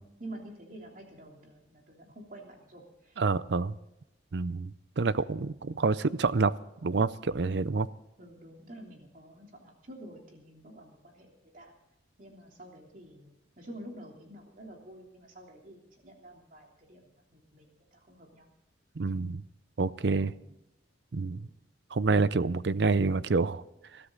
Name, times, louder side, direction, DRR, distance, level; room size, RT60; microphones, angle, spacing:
voice 1, 0.0-3.2 4.9-5.4 5.6-5.8 8.2-11.7 12.2-18.5 20.3-20.6 21.3-21.5, right 1 dB, 45° right, 1 dB, 3.2 m, -49 dB
voice 2, 3.2-3.7 4.3-6.5 6.8-7.9 19.0-19.4 19.8-20.3 21.1-21.4 21.9-23.6, right 4 dB, 60° right, 17 dB, 0.5 m, -27 dB
21.0 x 13.5 x 3.9 m, 0.88 s
head